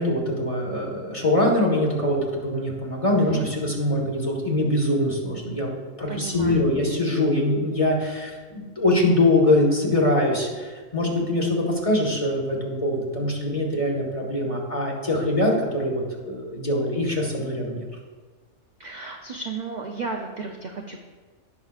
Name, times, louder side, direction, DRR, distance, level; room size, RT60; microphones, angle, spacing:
voice 1, 0.0-5.7 6.0-17.8, left 1 dB, 25° left, -2 dB, 1.6 m, -23 dB
voice 2, 3.2-3.5 6.1-6.7 18.8-21.0, right 4 dB, 45° right, 2 dB, 0.6 m, -33 dB
17.5 x 5.9 x 2.4 m, 1.4 s
omnidirectional pair, 1.4 m